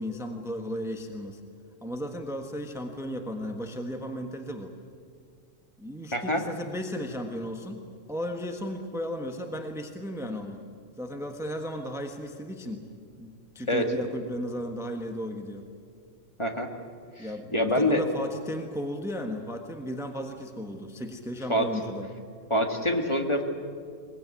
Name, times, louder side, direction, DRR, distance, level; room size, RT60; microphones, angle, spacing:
voice 1, 0.0-1.4 1.8-4.8 5.8-7.8 8.1-10.6 11.0-12.8 13.2-15.7 17.2-22.1, equal, ahead, 4 dB, 1.4 m, -35 dB
voice 2, 6.1-6.4 13.7-13.9 16.4-16.7 17.2-18.0 21.5-21.7 22.5-23.4, equal, 25° left, 3 dB, 1.9 m, -25 dB
22.5 x 20.5 x 9.6 m, 2.2 s
omnidirectional pair, 1.3 m